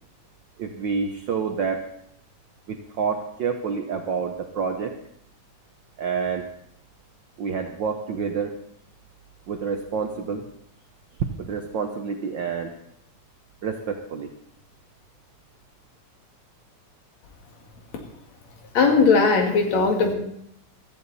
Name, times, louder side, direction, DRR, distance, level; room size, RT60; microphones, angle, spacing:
voice 1, 0.6-1.9 2.7-5.0 6.0-6.5 7.4-8.6 9.5-10.4 11.4-12.8 13.6-14.3, right 5 dB, 80° right, 4 dB, 1.0 m, -28 dB
voice 2, 18.7-20.1, left 4 dB, 65° left, 3 dB, 3.3 m, -18 dB
16.5 x 13.5 x 4.1 m, 0.69 s
omnidirectional pair, 3.4 m